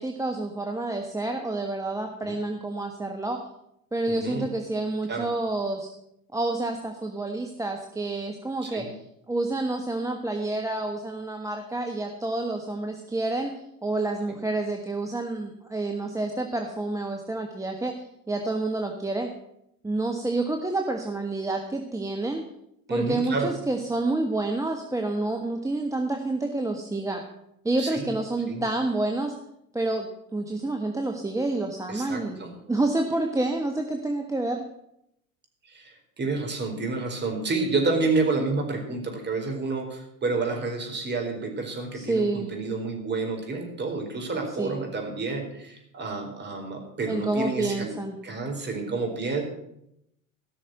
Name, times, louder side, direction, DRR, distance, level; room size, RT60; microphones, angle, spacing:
voice 1, 0.0-3.4 3.9-5.9 6.3-9.0 9.3-13.5 13.8-19.3 19.8-22.4 22.9-27.2 27.6-29.3 29.7-32.4 32.7-34.7 41.9-42.5 44.6-44.8 47.1-48.2, right 2 dB, 5° right, 3 dB, 1.4 m, -28 dB
voice 2, 22.9-23.5 27.8-28.1 28.5-28.6 31.9-32.5 35.6-47.9 48.2-49.4, right 3 dB, 25° right, 3 dB, 4.4 m, -29 dB
16.5 x 6.4 x 7.7 m, 0.79 s
hypercardioid pair, 95°, 42 cm